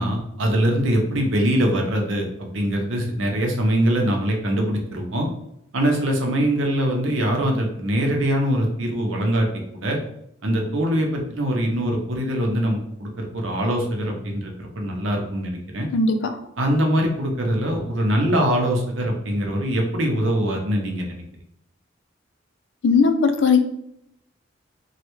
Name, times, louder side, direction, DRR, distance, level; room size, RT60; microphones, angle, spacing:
voice 1, 0.0-5.3 5.7-10.0 10.4-15.9 16.6-21.2, equal, 75° right, 1 dB, 0.7 m, -23 dB
voice 2, 22.8-23.6, left 4 dB, 60° left, 7 dB, 0.4 m, -17 dB
3.2 x 2.3 x 3.0 m, 0.76 s
head